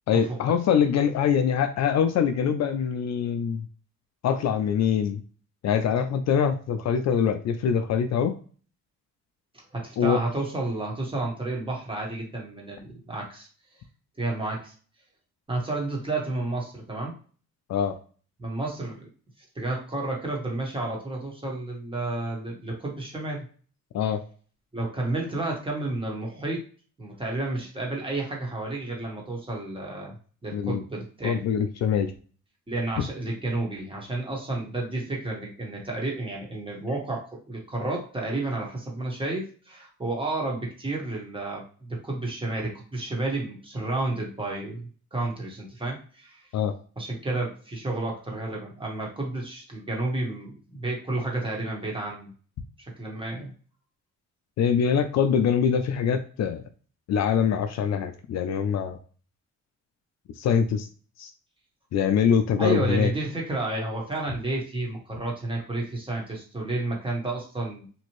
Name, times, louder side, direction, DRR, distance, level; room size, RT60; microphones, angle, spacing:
voice 1, 0.1-3.7 4.2-5.2 5.6-8.4 10.0-10.2 17.7-18.0 23.9-24.2 30.5-30.8 31.2-32.1 46.5-46.7 54.6-56.6 57.1-59.0 60.4-60.9 61.2-61.3 61.9-63.1, left 7 dB, 60° left, 8 dB, 0.5 m, -24 dB
voice 2, 9.5-13.5 14.2-14.7 15.5-17.1 18.4-19.1 19.5-23.4 24.7-26.6 27.0-30.1 30.4-31.4 32.7-46.5 47.0-52.3 52.9-53.5 62.6-67.9, right 2 dB, 15° right, -2 dB, 1.4 m, -31 dB
2.9 x 2.5 x 3.0 m, 0.41 s
cardioid pair, 90°, 30 cm